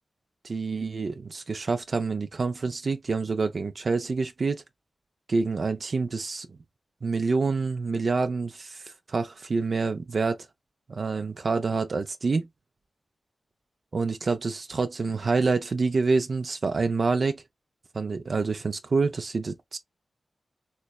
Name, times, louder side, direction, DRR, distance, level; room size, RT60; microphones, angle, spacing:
voice 1, 0.4-4.6 5.3-6.5 7.0-10.5 10.9-12.5 13.9-17.4 17.9-19.8, right 4 dB, 65° right, 0.5 m, -27 dB
3.1 x 3.1 x 2.3 m
cardioid pair, 40°, 0 cm